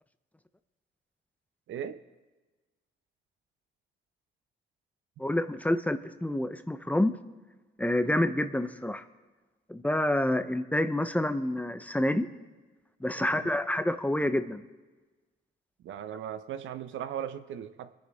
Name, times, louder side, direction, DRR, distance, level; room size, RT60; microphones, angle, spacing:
voice 1, 1.7-2.0 13.2-13.5 15.8-17.9, right 9 dB, 75° right, 11 dB, 0.8 m, -38 dB
voice 2, 5.2-7.2 7.8-9.0 9.7-12.3 13.0-14.6, left 1 dB, 5° left, 10 dB, 0.7 m, -28 dB
26.0 x 10.0 x 3.6 m, 1.3 s
cardioid pair, 90°, 20 cm